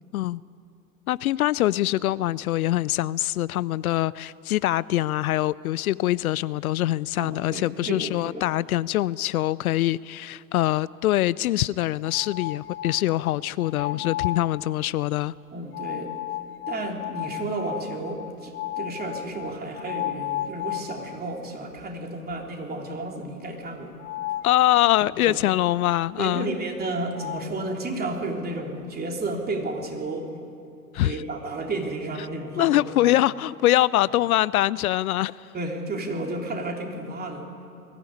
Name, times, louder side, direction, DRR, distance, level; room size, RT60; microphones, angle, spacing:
voice 1, 1.1-15.3 24.4-26.5 30.9-31.2 32.6-35.5, left 15 dB, 70° left, 20 dB, 0.5 m, -24 dB
voice 2, 7.2-8.5 13.8-14.1 15.5-16.1 16.7-23.9 25.0-25.4 26.2-30.3 31.0-33.2 35.5-37.7, right 2 dB, 20° right, 2 dB, 3.3 m, -32 dB
sound 1, 12.0-13.1 13.6-14.5 15.7-21.4 21.8-21.9 22.3-22.4 24.0-24.6 26.8-26.9 27.1-27.5, left 14 dB, 25° left, 0.6 m, -33 dB
21.5 x 15.0 x 9.8 m, 2.6 s
hypercardioid pair, 95°, 45 cm